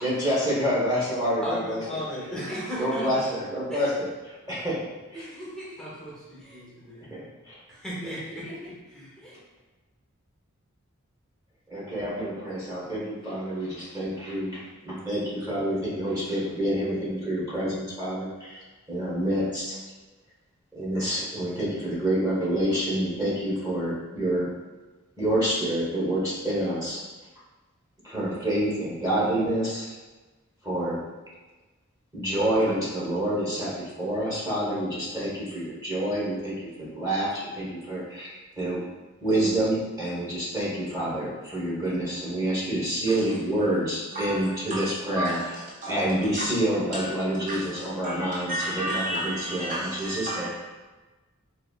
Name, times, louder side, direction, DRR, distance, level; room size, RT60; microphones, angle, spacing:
voice 1, 0.0-2.0 2.8-4.8 5.1-5.3 7.1-7.6 8.0-8.1 11.7-19.8 20.7-24.5 25.2-27.0 28.0-29.8 30.6-31.0 32.1-38.8 39.2-45.4 45.9-50.5, right 1 dB, 20° right, -8 dB, 1.2 m, -28 dB
voice 2, 1.4-3.1 3.7-3.9 4.4-4.7 5.1-7.2 7.7-9.3, equal, 5° left, -8 dB, 0.8 m, -36 dB
voice 3, 44.1-44.9 45.1-46.0 46.4-46.5 46.9-47.6 48.0-50.5, right 1 dB, 40° right, -4 dB, 0.4 m, -32 dB
4.1 x 2.6 x 2.4 m, 1.2 s
head